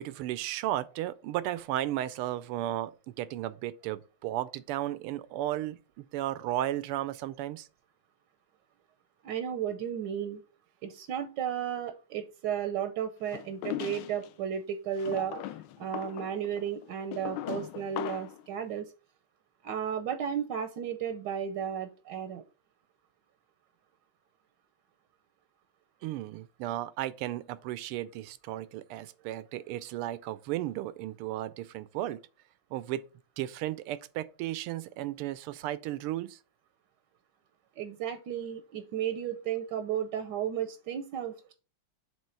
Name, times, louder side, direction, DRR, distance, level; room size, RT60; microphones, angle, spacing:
voice 1, 0.0-2.9 3.2-7.7 26.0-32.2 32.7-33.0 33.4-36.4, right 14 dB, 90° right, 1.5 m, -34 dB
voice 2, 9.2-10.4 10.8-18.9 19.6-22.4 37.8-41.5, right 8 dB, 70° right, 1.1 m, -34 dB
sound 1, 13.3-14.3 15.0-18.4, left 13 dB, 75° left, 1.0 m, -39 dB
7.5 x 3.1 x 5.6 m
omnidirectional pair, 2.4 m